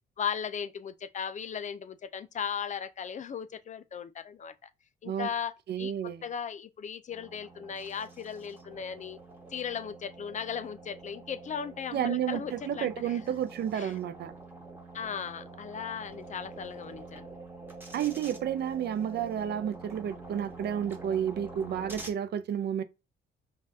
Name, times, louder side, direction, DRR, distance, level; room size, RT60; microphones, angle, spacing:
voice 1, 0.2-4.5 5.0-9.2 9.5-13.2 13.7-13.9 14.9-17.3, left 7 dB, 40° left, 0.4 m, -37 dB
voice 2, 5.7-6.2 11.9-14.3 17.9-22.8, right 9 dB, 55° right, 0.5 m, -31 dB
sound 1, 7.1-22.1, right 3 dB, 10° right, 1.2 m, -47 dB
5.3 x 2.4 x 2.6 m
cardioid pair, 90°, 20 cm